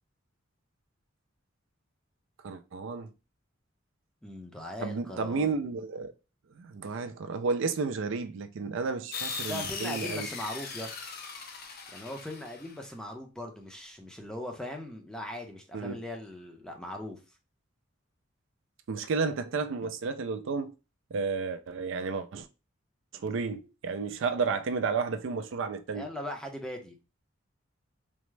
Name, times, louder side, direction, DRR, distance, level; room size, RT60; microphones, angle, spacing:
voice 1, 2.4-3.1 4.8-6.1 6.6-10.3 15.7-16.0 18.9-20.7 21.1-22.5 23.1-26.1, right 4 dB, 70° right, 0.4 m, -32 dB
voice 2, 4.2-5.5 9.5-10.9 11.9-17.2 25.9-27.0, left 1 dB, 5° left, 0.6 m, -39 dB
sound 1, 9.1-12.8, left 5 dB, 50° left, 0.6 m, -38 dB
3.5 x 2.0 x 3.2 m
head